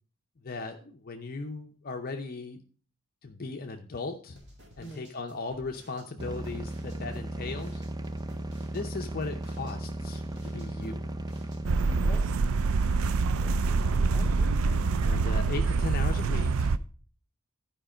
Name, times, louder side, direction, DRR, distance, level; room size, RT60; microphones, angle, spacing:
voice 1, 0.4-2.6 3.2-4.4 4.8-7.8 8.7-11.0 15.0-16.7, left 3 dB, 45° left, 4 dB, 0.6 m, -37 dB
sound 1, 4.4-11.6, equal, 55° right, 2.3 m, -54 dB
sound 2, 6.2-12.2, right 1 dB, 20° right, 0.4 m, -36 dB
sound 3, 11.6-16.8, right 4 dB, 75° right, 0.4 m, -25 dB
voice 2, 11.9-12.3 13.4-14.9, equal, 5° left, -3 dB, 1.9 m, -45 dB
11.5 x 5.1 x 4.9 m, 0.42 s
head